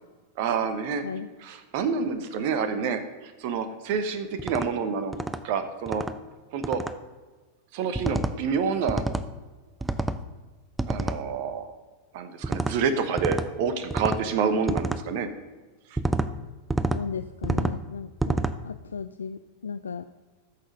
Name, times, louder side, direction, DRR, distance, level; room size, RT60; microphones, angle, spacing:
voice 1, 0.4-1.0 1.4-5.2 5.4-6.0 6.5-6.8 7.7-9.0 10.9-11.7 12.1-15.3 15.9-16.0, right 6 dB, 50° right, 10 dB, 1.0 m, -28 dB
sound 1, 4.4-4.7 5.1-5.4 5.9-6.1 6.6-6.9 8.0-8.4 8.9-9.3 9.8-10.2 10.8-11.2 12.4-12.8 13.2-13.5 13.9-14.2 14.7-15.0 16.0-16.3 16.7-17.0 17.4-17.8 18.2-18.6, right 2 dB, 10° right, 0.5 m, -28 dB
voice 2, 16.9-20.0, left 6 dB, 70° left, 11 dB, 0.3 m, -36 dB
14.0 x 6.4 x 5.3 m, 1.3 s
figure-of-eight pair, 90°, 0 cm